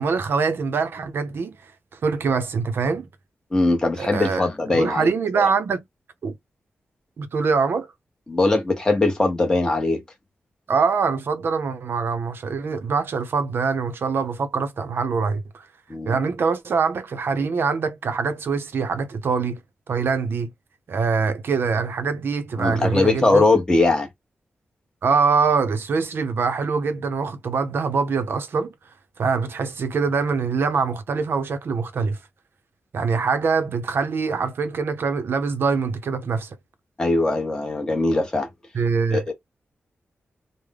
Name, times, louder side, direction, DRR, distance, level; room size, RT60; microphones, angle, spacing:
voice 1, 0.0-1.6 2.0-3.1 4.0-5.8 6.2-6.3 7.2-7.9 10.7-15.7 16.1-19.6 19.9-20.5 20.9-23.5 25.0-28.7 29.2-32.2 32.9-36.5 38.7-39.3, right 5 dB, 60° right, 0.6 m, -24 dB
voice 2, 3.5-5.4 8.3-10.0 15.9-16.1 22.6-24.1 37.0-38.5 39.1-39.3, left 2 dB, 15° left, 1.0 m, -21 dB
3.3 x 2.1 x 3.5 m
wide cardioid pair, 170°, 4 cm